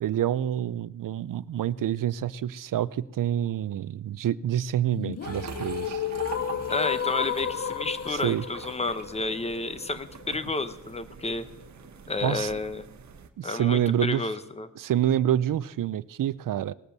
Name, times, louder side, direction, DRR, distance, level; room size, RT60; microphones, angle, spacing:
voice 1, 0.0-6.0 8.1-8.4 12.2-12.5 13.4-14.3 14.8-16.7, right 11 dB, 75° right, 18 dB, 0.5 m, -27 dB
sound 1, 5.0-11.0, left 8 dB, 50° left, 0.6 m, -33 dB
sound 2, 5.2-13.3, right 6 dB, 60° right, 1.1 m, -43 dB
voice 2, 6.7-11.5 12.1-12.8 13.4-14.7, left 3 dB, 20° left, 12 dB, 0.8 m, -31 dB
19.0 x 8.1 x 6.8 m, 0.91 s
wide cardioid pair, 150°, 32 cm